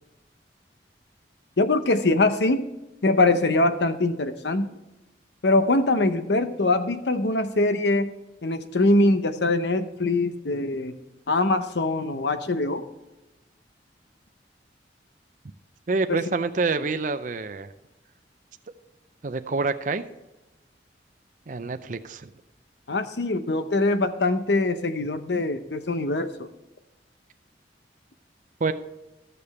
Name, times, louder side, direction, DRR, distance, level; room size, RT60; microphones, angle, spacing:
voice 1, 1.6-2.6 3.0-4.7 5.4-8.1 8.4-10.9 11.3-12.8 16.1-16.2 22.9-26.5, left 2 dB, 70° left, 10 dB, 0.8 m, -23 dB
voice 2, 15.9-17.7 19.2-20.0 21.5-22.3 28.6-28.7, right 3 dB, 45° right, 9 dB, 0.5 m, -27 dB
13.5 x 6.8 x 4.2 m, 1.0 s
head